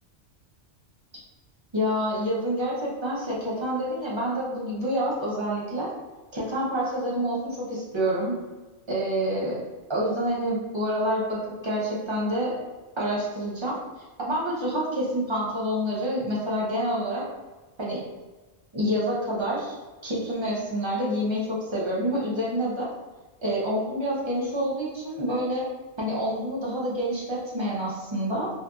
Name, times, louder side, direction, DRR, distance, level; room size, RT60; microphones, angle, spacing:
voice 1, 1.7-5.9 6.3-8.3 8.9-9.6 9.9-12.6 13.0-13.8 14.2-17.2 17.8-18.0 18.7-19.8 20.0-22.9 23.4-25.7 26.0-28.5, equal, 40° right, -5 dB, 0.4 m, -27 dB
2.6 x 2.5 x 2.2 m, 1.2 s
omnidirectional pair, 1.2 m